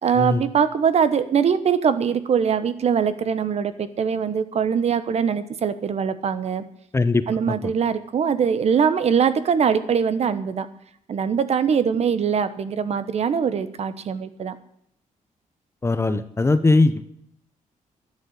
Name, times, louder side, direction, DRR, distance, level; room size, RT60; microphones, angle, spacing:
voice 1, 0.0-6.6 7.3-10.7 11.1-14.6, right 7 dB, 50° right, 13 dB, 1.1 m, -22 dB
voice 2, 6.9-7.5 15.8-17.0, left 3 dB, 20° left, 12 dB, 0.7 m, -20 dB
11.5 x 10.5 x 8.1 m, 0.71 s
wide cardioid pair, 165°, 14 cm